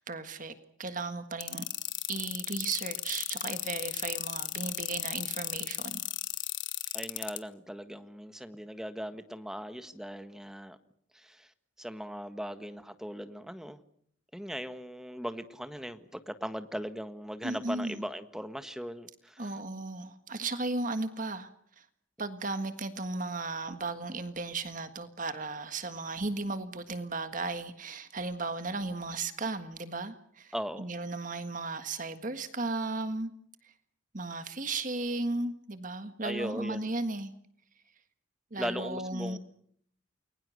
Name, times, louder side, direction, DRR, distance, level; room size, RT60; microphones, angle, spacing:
voice 1, 0.1-1.6 2.1-6.0 17.4-18.0 19.4-21.5 21.8-21.9 22.2-33.3 34.1-37.3 38.5-39.4, right 3 dB, 40° right, 1.6 m, -35 dB
sound 1, 1.4-7.4, left 15 dB, 65° left, 1.6 m, -34 dB
voice 2, 6.9-10.8 11.1-11.5 11.8-13.8 14.3-19.5 30.5-30.9 36.2-36.9 38.6-39.4, equal, 5° right, 1.5 m, -39 dB
29.5 x 22.0 x 6.5 m
head